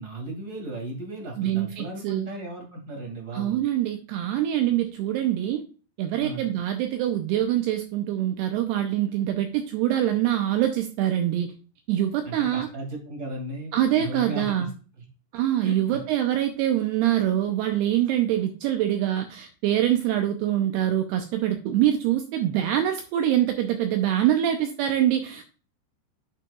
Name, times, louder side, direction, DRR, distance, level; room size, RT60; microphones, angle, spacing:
voice 1, 0.0-3.6 6.2-6.5 12.2-14.7 15.0-15.1 15.6-16.0, right 1 dB, 35° right, 0 dB, 1.6 m, -36 dB
voice 2, 1.4-2.3 3.3-5.6 6.0-11.5 11.9-12.7 13.7-14.7 15.3-25.4, right 12 dB, 85° right, 6 dB, 2.4 m, -24 dB
9.0 x 5.9 x 2.3 m, 0.37 s
omnidirectional pair, 5.3 m